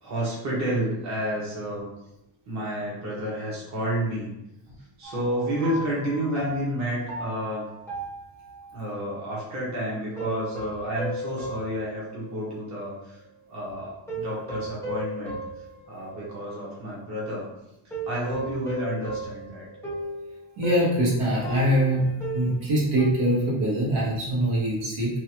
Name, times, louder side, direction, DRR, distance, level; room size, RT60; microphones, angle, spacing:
voice 1, 0.0-1.9 2.5-4.3 5.0-7.7 8.7-13.2 13.5-15.4 15.9-17.5 18.1-19.6, equal, 35° right, -5 dB, 1.0 m, -30 dB
sound 1, 5.0-8.8 10.2-12.7 13.2-13.3 14.1-16.6 17.9-23.1, right 1 dB, 5° left, 0.7 m, -36 dB
voice 2, 20.6-22.1 22.3-25.1, right 1 dB, 85° right, -5 dB, 1.4 m, -23 dB
3.0 x 2.4 x 2.8 m, 0.87 s
cardioid pair, 145°, 48 cm